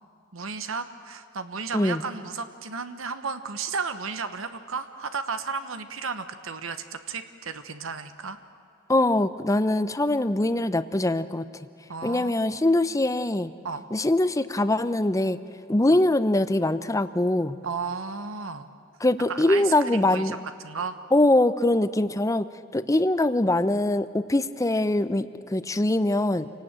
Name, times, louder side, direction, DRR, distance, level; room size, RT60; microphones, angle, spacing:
voice 1, 0.3-8.4 11.9-12.3 13.6-13.9 15.9-16.0 17.6-18.7 19.3-20.4 20.6-21.0, right 5 dB, 75° right, 10 dB, 1.1 m, -33 dB
voice 2, 8.9-11.4 12.0-13.5 13.9-15.4 15.7-17.6 19.0-20.3 21.1-22.5 22.7-25.3 25.5-26.5, left 1 dB, 15° left, 13 dB, 0.7 m, -23 dB
28.0 x 18.5 x 9.0 m, 2.3 s
head